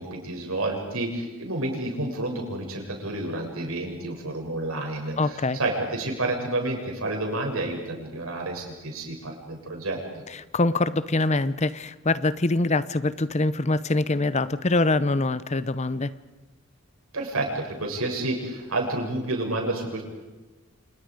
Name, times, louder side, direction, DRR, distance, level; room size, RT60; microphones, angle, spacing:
voice 1, 0.0-10.0 17.1-20.0, right 2 dB, 85° right, 1 dB, 7.9 m, -30 dB
voice 2, 5.2-5.6 10.3-16.1, left 2 dB, 30° left, 15 dB, 0.8 m, -24 dB
30.0 x 28.5 x 5.2 m, 1.1 s
head